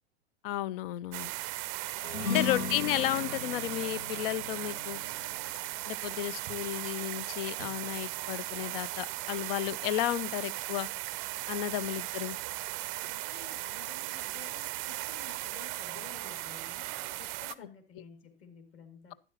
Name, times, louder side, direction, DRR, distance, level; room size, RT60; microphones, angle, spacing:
voice 1, 0.4-1.3 2.3-5.0 5.9-10.9 11.5-12.4, left 14 dB, 55° left, 0.6 m, -33 dB
sound 1, 1.1-17.5, right 19 dB, 35° right, 0.5 m, -37 dB
sound 2, 2.0-6.7, left 6 dB, 75° left, 1.9 m, -37 dB
voice 2, 2.1-2.7 11.7-11.8 13.0-19.1, left 5 dB, 40° left, 2.4 m, -53 dB
11.5 x 10.0 x 2.9 m
hypercardioid pair, 95°, 34 cm